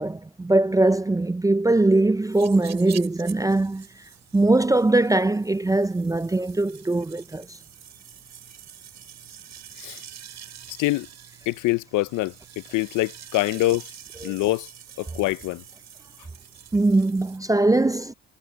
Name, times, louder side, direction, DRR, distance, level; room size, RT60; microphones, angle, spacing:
voice 1, 0.0-3.9 4.3-7.6 14.2-14.4 16.7-18.1, right 2 dB, 10° right, 0.4 m, -21 dB
sound 1, 2.3-17.4, right 9 dB, 65° right, 7.6 m, -46 dB
voice 2, 10.7-11.1 11.5-13.9 14.2-14.7 15.0-15.6, left 18 dB, 90° left, 0.6 m, -25 dB
cardioid pair, 90°, 30 cm